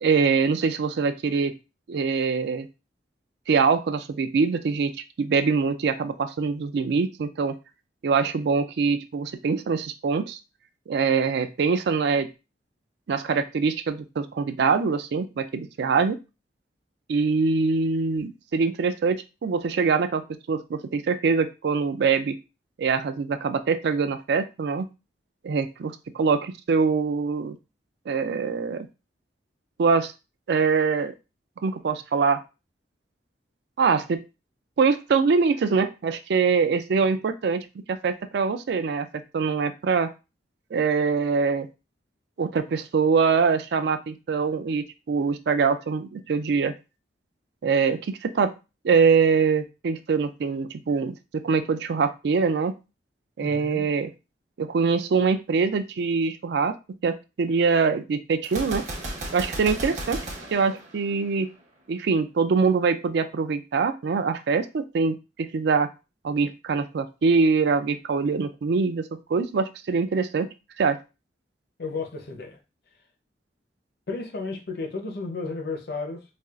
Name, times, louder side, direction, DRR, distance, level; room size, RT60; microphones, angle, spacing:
voice 1, 0.0-1.5 1.9-2.7 3.5-4.9 5.2-7.6 8.0-10.4 10.9-12.3 13.1-16.2 17.1-22.4 22.8-24.9 25.4-27.6 28.1-28.9 29.8-30.1 30.5-31.1 31.6-32.4 33.8-34.2 34.8-39.1 39.3-40.1 40.7-41.7 42.4-46.7 47.6-48.5 48.8-52.8 53.4-54.1 54.6-56.8 57.0-58.9 59.3-60.2 60.5-61.5 61.9-65.9 66.2-70.5 70.8-71.0, right 5 dB, 65° right, 10 dB, 0.4 m, -24 dB
voice 2, 53.4-53.8 71.8-72.6 74.1-76.2, left 3 dB, 60° left, 3 dB, 0.7 m, -33 dB
Gunshot gunfire, 58.4-61.5, right 1 dB, 45° right, 0.7 m, -34 dB
4.2 x 2.3 x 2.4 m, 0.28 s
head